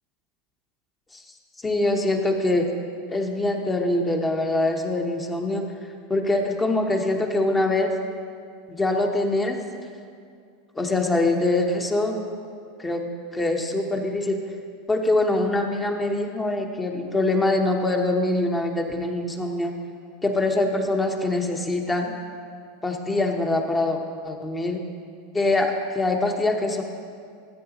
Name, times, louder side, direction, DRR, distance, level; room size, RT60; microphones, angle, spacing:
voice 1, 1.6-2.7 3.1-5.7 6.1-8.0 8.7-9.6 10.7-12.1 12.8-13.0 13.3-14.4 14.9-19.7 20.2-22.1 22.8-24.0 24.2-24.8 25.3-26.8, left 2 dB, 15° left, 3 dB, 1.1 m, -23 dB
14.5 x 8.5 x 3.0 m, 2.2 s
hypercardioid pair, 90°, 0 cm